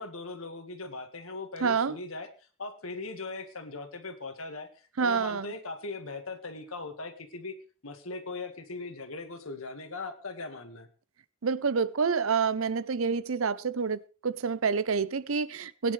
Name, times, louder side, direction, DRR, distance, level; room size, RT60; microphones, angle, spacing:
voice 1, 0.0-2.3 2.6-4.7 5.0-7.6 7.8-10.9, left 3 dB, 80° left, 1.8 m, -39 dB
voice 2, 1.6-2.0 5.0-5.5 11.4-15.9, right 5 dB, 75° right, 0.6 m, -28 dB
20.0 x 10.0 x 3.3 m
head